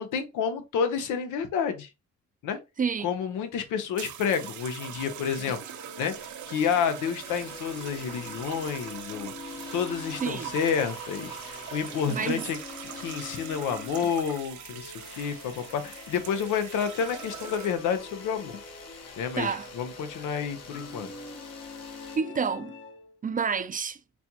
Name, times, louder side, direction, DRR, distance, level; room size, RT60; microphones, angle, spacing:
voice 1, 0.0-1.9 2.4-2.6 3.0-5.6 6.0-6.1 6.5-12.6 13.0-18.6 19.2-21.1, left 7 dB, 85° left, 0.8 m, -30 dB
voice 2, 2.8-3.1 10.2-10.5 12.0-12.4 19.4-19.7 22.2-22.7 23.2-24.0, right 6 dB, 30° right, 0.4 m, -29 dB
sound 1, 4.0-18.0 18.9-19.2, right 10 dB, 70° right, 0.6 m, -42 dB
sound 2, 5.5-23.2, left 3 dB, 40° left, 0.8 m, -45 dB
sound 3, 7.2-22.2, left 5 dB, 55° left, 1.1 m, -49 dB
4.3 x 2.3 x 2.8 m
cardioid pair, 90°, 30 cm